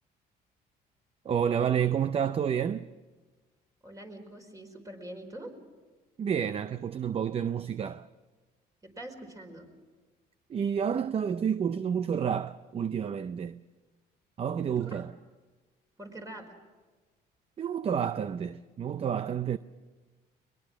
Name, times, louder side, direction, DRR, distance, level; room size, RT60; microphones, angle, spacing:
voice 1, 1.2-2.9 6.2-8.1 10.5-13.6 14.4-15.1 17.6-19.6, right 8 dB, 35° right, 0.6 m, -29 dB
voice 2, 3.8-5.5 8.8-9.7 14.6-15.0 16.0-16.5, right 1 dB, 20° right, 4.8 m, -44 dB
22.0 x 22.0 x 6.3 m
cardioid pair, 110°, 17 cm